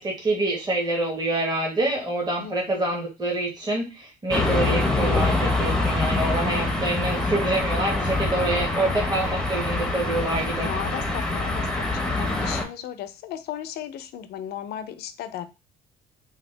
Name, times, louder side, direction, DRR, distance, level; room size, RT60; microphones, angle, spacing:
voice 1, 0.0-10.7, right 1 dB, 25° right, -1 dB, 1.2 m, -26 dB
voice 2, 2.4-3.0 10.6-15.5, left 10 dB, 75° left, 10 dB, 0.5 m, -36 dB
sound 1, 4.3-12.7, left 2 dB, 5° left, 0.7 m, -25 dB
3.5 x 2.3 x 3.3 m, 0.27 s
cardioid pair, 110°, 17 cm